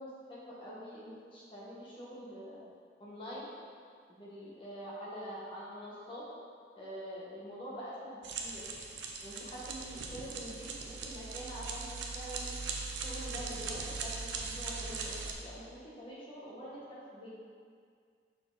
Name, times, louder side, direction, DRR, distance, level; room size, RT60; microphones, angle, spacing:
voice 1, 0.0-2.6 3.0-3.5 4.1-6.2 6.7-8.6 9.2-12.5 13.0-17.3, equal, 30° left, -8 dB, 1.5 m, -45 dB
sound 1, 8.2-15.3, right 4 dB, 85° right, 0.6 m, -40 dB
5.7 x 4.4 x 4.1 m, 2.1 s
head